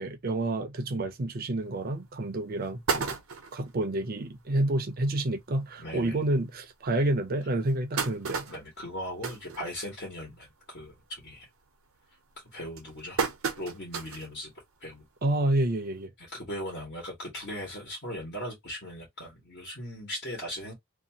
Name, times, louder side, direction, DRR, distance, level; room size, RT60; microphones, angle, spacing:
voice 1, 0.0-3.2 3.5-8.5 15.2-16.1, right 1 dB, 45° right, 0.5 m, -29 dB
sound 1, 1.7-1.8 2.3-2.4 2.6-3.7 4.3-4.4 4.6-4.7 5.1-5.2 5.9-6.0 6.6-6.7 7.4-10.2 10.6-10.9 11.3-11.7 12.3-14.3 14.8-14.9 16.0-16.1, right 5 dB, 85° right, 0.7 m, -33 dB
voice 2, 5.8-6.2 8.5-11.5 12.5-13.2 13.6-14.5 14.8-15.0 16.3-20.7, equal, 55° left, 1.2 m, -38 dB
2.7 x 2.3 x 2.7 m
head